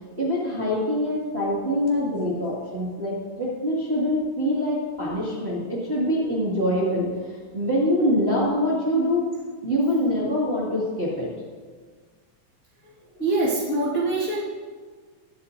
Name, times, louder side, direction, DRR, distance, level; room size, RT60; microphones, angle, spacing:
voice 1, 0.2-7.1 7.5-9.3 9.6-11.3, equal, 25° right, -6 dB, 1.5 m, -24 dB
voice 2, 12.8-14.4, right 2 dB, 30° left, -8 dB, 1.4 m, -25 dB
20.5 x 8.6 x 2.6 m, 1.5 s
omnidirectional pair, 3.9 m